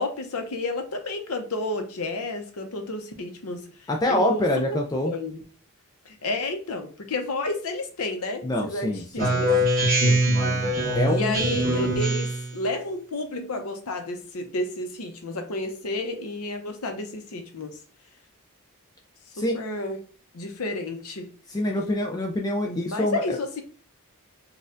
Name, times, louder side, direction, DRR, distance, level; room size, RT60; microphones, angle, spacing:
voice 1, 0.0-3.6 4.1-4.4 4.7-4.8 5.0-5.4 6.1-9.5 11.1-17.8 19.4-20.1 20.3-21.3 22.6-23.6, left 2 dB, 85° left, 6 dB, 0.7 m, -31 dB
voice 2, 3.9-5.1 8.4-9.4 10.9-11.4 19.3-19.6 21.5-23.4, left 1 dB, 15° left, 1 dB, 0.3 m, -25 dB
Speech synthesizer, 9.2-12.5, right 1 dB, 40° right, 1.0 m, -23 dB
4.1 x 2.3 x 2.5 m, 0.41 s
head